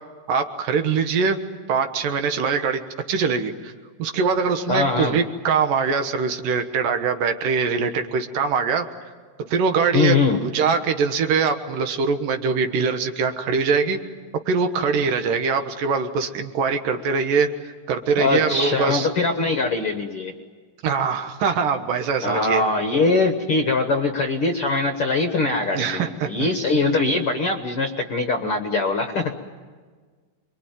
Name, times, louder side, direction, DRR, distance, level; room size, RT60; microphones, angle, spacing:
voice 1, 0.3-1.4 1.7-2.8 3.1-3.7 4.0-8.9 9.5-14.0 14.5-17.5 17.9-19.1 20.8-22.6 25.7-26.5, right 5 dB, 70° right, 7 dB, 2.9 m, -22 dB
voice 2, 4.7-5.1 9.9-10.4 18.2-20.3 22.2-29.3, left 3 dB, 55° left, 5 dB, 1.6 m, -22 dB
27.5 x 23.0 x 9.1 m, 1.5 s
omnidirectional pair, 4.2 m